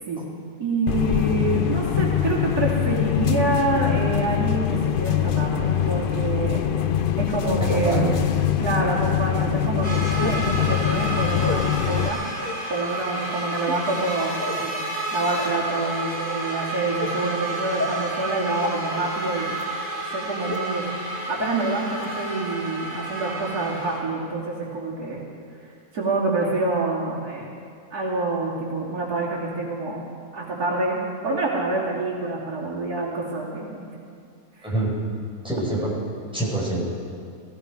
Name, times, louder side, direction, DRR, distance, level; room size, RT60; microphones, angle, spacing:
voice 1, 0.6-6.6 7.2-8.1 8.6-12.2 12.7-14.7 15.1-19.5 20.1-20.9 21.3-25.2 25.9-27.5 27.9-30.0 30.3-31.0 31.2-33.8 34.6-34.7, right 2 dB, 80° right, -5 dB, 3.1 m, -27 dB
sound 1, 0.9-12.1, left 10 dB, 85° left, 0.4 m, -23 dB
voice 2, 7.6-8.2 34.6-35.0 35.4-35.9 36.3-36.9, right 2 dB, 5° right, -6 dB, 4.6 m, -25 dB
sound 2, 7.7-7.8 8.7-8.8 10.2-10.4 11.4-11.6 12.4-12.6 13.5-13.8 14.4-14.6 15.4-15.5 16.1-16.3 17.0-17.1 17.8-17.9 18.6-18.7 19.5-19.6 20.5-20.6 21.4-21.5 22.0-22.1, left 3 dB, 15° left, 0.5 m, -30 dB
sound 3, 9.8-24.0, right 2 dB, 25° right, 3.0 m, -31 dB
18.0 x 16.0 x 5.0 m, 2.3 s
omnidirectional pair, 1.6 m